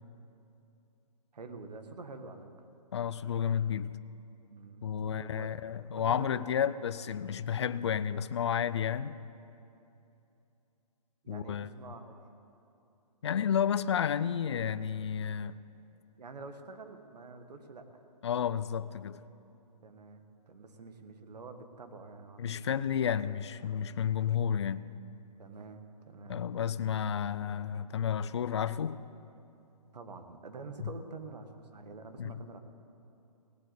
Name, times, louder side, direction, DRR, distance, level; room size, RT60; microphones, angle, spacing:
voice 1, 1.3-2.5 4.5-5.5 6.0-6.4 11.2-12.2 16.2-18.0 19.8-22.6 25.4-26.5 29.9-32.6, right 3 dB, 75° right, 1.6 m, -47 dB
voice 2, 2.9-3.9 4.8-9.2 11.3-11.7 13.2-15.6 18.2-19.2 22.4-24.9 26.3-29.0 30.8-30.9 32.2-32.3, left 8 dB, 45° left, 0.4 m, -31 dB
17.0 x 8.2 x 8.1 m
hypercardioid pair, 165°, 21 cm